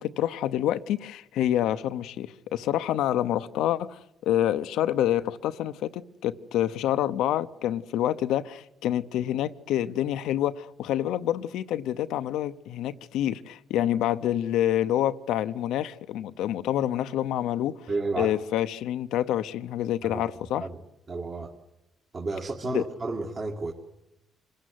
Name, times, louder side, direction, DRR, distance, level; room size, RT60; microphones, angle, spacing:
voice 1, 0.0-17.8 18.2-20.7 22.7-22.8, left 12 dB, 90° left, 0.8 m, -27 dB
voice 2, 17.9-18.3 20.0-20.2 20.6-20.8 21.1-21.5 22.1-23.7, right 3 dB, 40° right, 2.2 m, -31 dB
26.5 x 15.5 x 9.5 m
cardioid pair, 90°, 0 cm